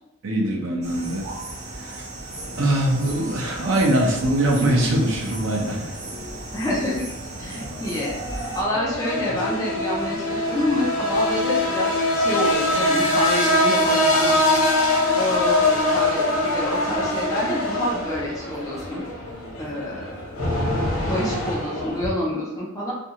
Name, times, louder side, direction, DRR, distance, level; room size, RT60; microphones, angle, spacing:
voice 1, 0.2-1.3 1.8-2.0 2.6-5.8, right 1 dB, 75° right, -2 dB, 0.7 m, -22 dB
sound 1, 0.8-8.6, right 2 dB, 35° right, 0.7 m, -36 dB
sound 2, 2.3-22.1, left 1 dB, 80° left, 0.9 m, -24 dB
voice 2, 6.5-7.0 7.4-14.4 15.1-19.0 19.6-20.4 21.0-22.9, left 1 dB, 15° left, -5 dB, 0.5 m, -28 dB
2.5 x 2.3 x 2.8 m, 0.86 s
head